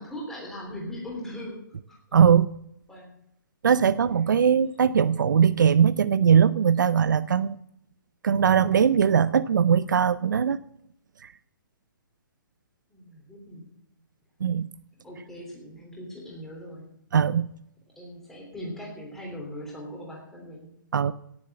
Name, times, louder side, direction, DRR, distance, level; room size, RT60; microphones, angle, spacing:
voice 1, 0.0-2.0 2.9-3.1 12.9-13.8 15.0-16.9 17.9-20.7, equal, 5° left, -3 dB, 3.2 m, -40 dB
voice 2, 2.1-2.5 3.6-7.6 8.2-10.6 14.4-14.7 17.1-17.5 20.9-21.1, right 7 dB, 60° right, 16 dB, 0.5 m, -20 dB
17.5 x 7.2 x 7.7 m, 0.78 s
hypercardioid pair, 175°, 11 cm